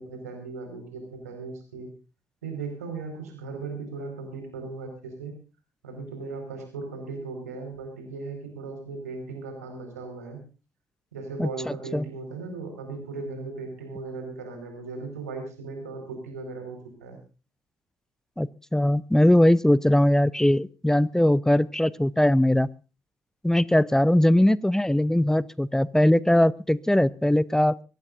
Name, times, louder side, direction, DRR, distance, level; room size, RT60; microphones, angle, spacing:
voice 1, 0.0-1.9 2.4-5.3 5.8-10.4 11.1-17.2, right 4 dB, 80° right, 5 dB, 4.9 m, -37 dB
voice 2, 11.4-12.0 18.4-22.7 23.4-27.8, left 1 dB, 5° left, 22 dB, 0.7 m, -21 dB
24.0 x 17.0 x 2.6 m, 0.32 s
figure-of-eight pair, 45°, 8 cm